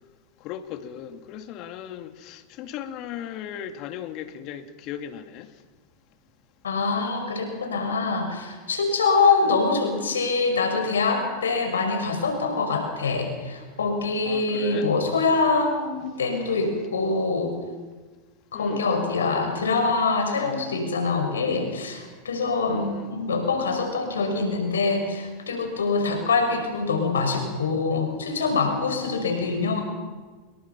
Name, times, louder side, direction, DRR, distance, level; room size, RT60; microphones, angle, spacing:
voice 1, 0.4-5.5 9.4-9.6 14.2-14.9 18.5-18.9 22.7-23.2 29.0-29.6, left 10 dB, 50° left, 2.3 m, -37 dB
voice 2, 6.6-17.5 18.5-29.8, left 4 dB, 85° left, 5.7 m, -24 dB
28.0 x 21.5 x 6.0 m
hypercardioid pair, 95°, 0 cm